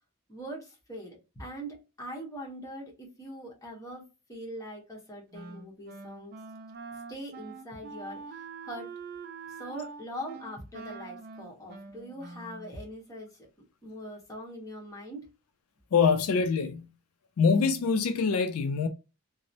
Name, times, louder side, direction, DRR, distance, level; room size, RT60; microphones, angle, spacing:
voice 1, 0.3-4.0 4.3-6.4 7.1-8.9 9.5-13.5 13.8-15.2, equal, 15° left, 1.0 m, -42 dB
Wind instrument woodwind instrument, 5.3-12.8, right 4 dB, 45° right, 0.3 m, -44 dB
voice 2, 15.9-16.9 17.4-18.9, left 5 dB, 75° left, 0.4 m, -24 dB
2.9 x 2.0 x 2.5 m
head